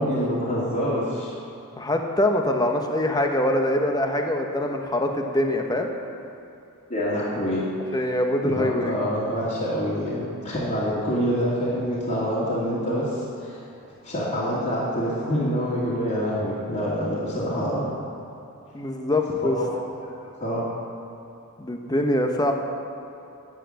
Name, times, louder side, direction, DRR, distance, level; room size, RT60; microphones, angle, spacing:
voice 1, 0.0-1.3 6.9-7.6 8.5-13.6 14.0-17.8 19.4-19.7 20.0-20.1 20.4-20.6, equal, 40° left, -11 dB, 2.7 m, -26 dB
voice 2, 1.8-5.9 7.9-8.9 11.2-11.3 18.7-19.6 21.6-22.5, left 1 dB, 20° left, 3 dB, 1.0 m, -24 dB
9.9 x 9.2 x 7.5 m, 2.8 s
head